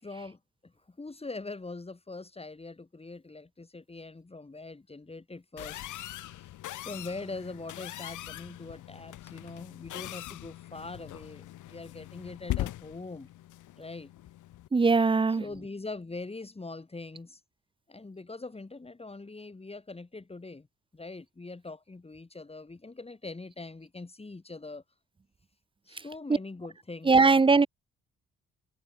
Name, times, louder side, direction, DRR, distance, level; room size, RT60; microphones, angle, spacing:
voice 1, 0.0-5.8 6.2-6.5 6.8-13.3 13.8-14.1 15.3-17.4 17.9-20.7 20.9-24.8 25.8-27.3, left 3 dB, 20° left, 5.0 m, -42 dB
sound 1, 5.6-14.7, left 14 dB, 80° left, 2.2 m, -41 dB
voice 2, 14.7-15.4 27.1-27.7, right 4 dB, 15° right, 0.6 m, -20 dB
cardioid pair, 90°, 30 cm